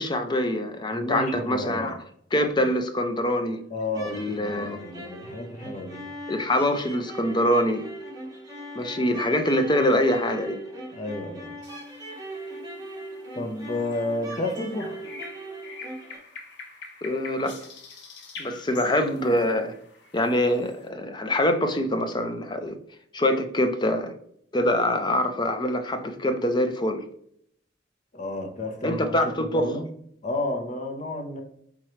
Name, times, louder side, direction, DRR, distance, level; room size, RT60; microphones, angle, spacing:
voice 1, 0.0-2.0 2.3-3.6 4.1-5.1 6.3-7.9 8.7-10.6 17.0-17.6 18.4-19.8 20.1-22.8 23.1-24.1 24.5-27.1 28.8-29.7, left 1 dB, 25° left, 0.5 m, -24 dB
voice 2, 0.9-1.9 3.7-6.1 10.9-11.6 13.3-15.0 28.1-29.9 30.2-31.4, left 2 dB, 45° left, 0.9 m, -31 dB
sound 1, 3.9-16.2, right 1 dB, 20° right, 1.1 m, -39 dB
sound 2, 11.6-20.9, left 4 dB, 85° left, 0.9 m, -46 dB
4.4 x 3.7 x 3.1 m
head